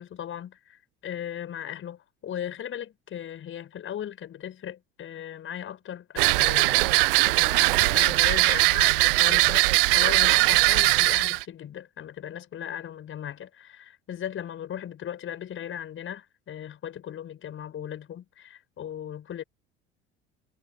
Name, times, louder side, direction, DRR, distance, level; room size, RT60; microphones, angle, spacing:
voice 1, 0.0-9.7 9.9-19.4, left 10 dB, 45° left, 6.7 m, -37 dB
sound 1, 6.2-11.4, right 24 dB, 65° right, 0.4 m, -20 dB
figure-of-eight pair, 65°, 30 cm